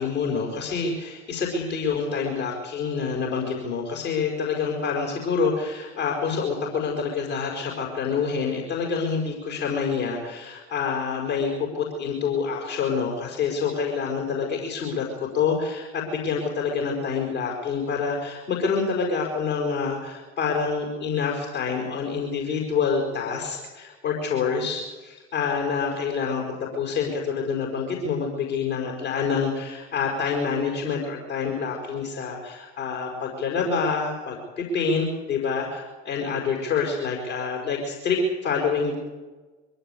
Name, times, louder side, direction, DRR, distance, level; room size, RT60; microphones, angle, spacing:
voice 1, 0.0-39.0, left 5 dB, 80° left, -2 dB, 5.5 m, -27 dB
23.0 x 17.0 x 8.6 m, 1.3 s
hypercardioid pair, 65°, 33 cm